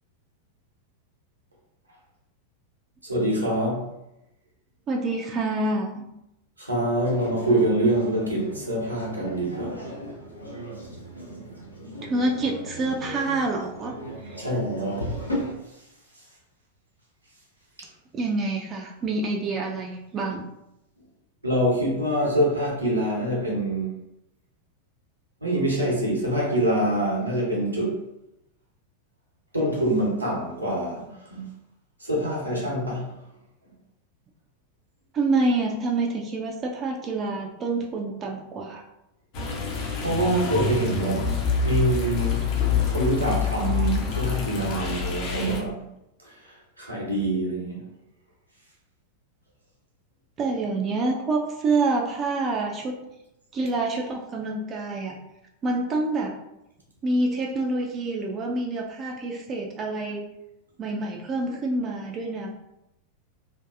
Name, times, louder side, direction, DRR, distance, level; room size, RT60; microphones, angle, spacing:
voice 1, 3.0-3.9 6.6-9.8 14.4-15.1 21.4-23.9 25.4-28.0 29.5-31.5 32.0-33.1 40.0-41.2 41.6-42.4 42.9-45.9 46.8-47.8, right 1 dB, 85° right, -3 dB, 0.8 m, -25 dB
voice 2, 4.9-6.0 12.0-13.9 14.2-14.5 18.1-20.4 35.1-38.8 50.4-53.0 53.5-55.2 55.6-56.3 57.0-60.3 60.8-62.5, right 2 dB, 25° right, 0 dB, 0.3 m, -27 dB
sound 1, 7.0-15.5, equal, 85° left, 0.5 m, -36 dB
sound 2, 39.3-45.6, left 5 dB, 45° left, 0.6 m, -26 dB
2.6 x 2.2 x 2.4 m, 0.87 s
figure-of-eight pair, 90°, 0 cm